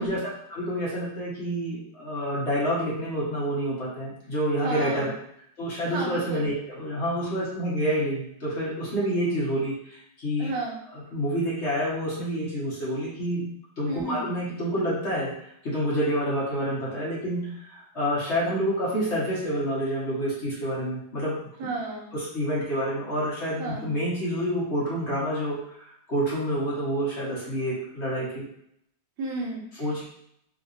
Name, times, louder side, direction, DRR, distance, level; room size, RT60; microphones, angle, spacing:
voice 1, 0.0-5.1 5.6-10.5 10.9-13.4 13.8-15.3 15.6-21.4 22.1-28.4 29.8-30.0, equal, 40° left, -7 dB, 1.3 m, -28 dB
voice 2, 4.6-5.1 5.9-6.5 10.4-10.8 13.9-14.3 21.6-22.1 23.6-23.9 29.2-29.6, right 3 dB, 90° right, -1 dB, 1.5 m, -32 dB
3.8 x 2.7 x 2.5 m, 0.71 s
omnidirectional pair, 1.9 m